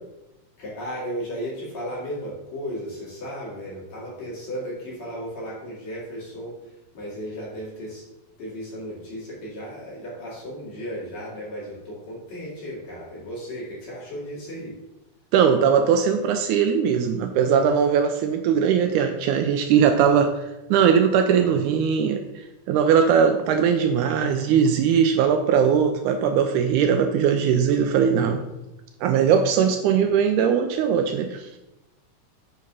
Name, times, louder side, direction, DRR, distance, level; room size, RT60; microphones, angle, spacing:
voice 1, 0.6-8.0 8.4-14.8, equal, 50° left, -6 dB, 3.5 m, -35 dB
voice 2, 15.3-20.4 20.7-28.4 29.0-31.5, right 7 dB, 90° right, 6 dB, 1.7 m, -20 dB
6.9 x 5.1 x 5.4 m, 0.97 s
omnidirectional pair, 4.1 m